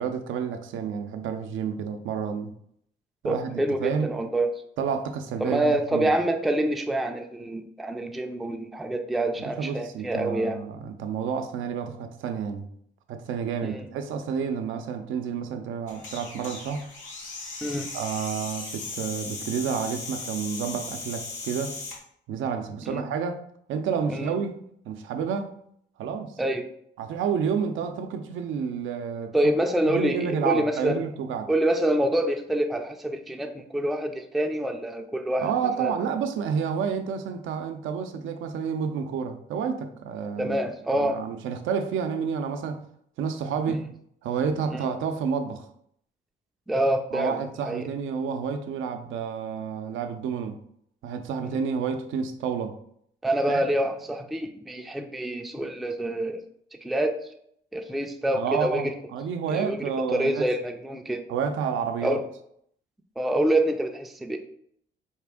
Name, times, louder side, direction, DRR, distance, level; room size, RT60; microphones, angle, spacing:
voice 1, 0.0-2.5 3.2-4.2 4.8-6.1 9.4-12.7 13.1-16.8 17.9-21.8 22.3-23.4 23.7-25.6 26.0-26.4 27.0-29.3 29.8-31.5 35.4-40.7 40.9-42.8 43.2-43.8 44.2-45.6 47.1-50.6 51.0-52.8 53.5-53.6 58.4-60.4 61.3-62.2, right 6 dB, 80° right, 0.5 m, -30 dB
voice 2, 3.2-4.5 5.4-10.6 13.6-13.8 17.6-17.9 22.8-23.0 24.1-24.3 26.4-26.6 29.3-31.0 31.5-35.5 35.8-35.9 40.4-41.2 43.7-43.8 44.7-44.9 46.7-47.9 51.4-51.6 53.2-56.4 56.8-57.2 57.7-58.9 59.5-59.8 60.1-61.2 62.0-62.2 63.2-64.4, right 1 dB, ahead, 0.4 m, -26 dB
sound 1, 15.9-22.0, left 3 dB, 75° left, 1.2 m, -37 dB
4.3 x 2.5 x 3.5 m
cardioid pair, 90°, 20 cm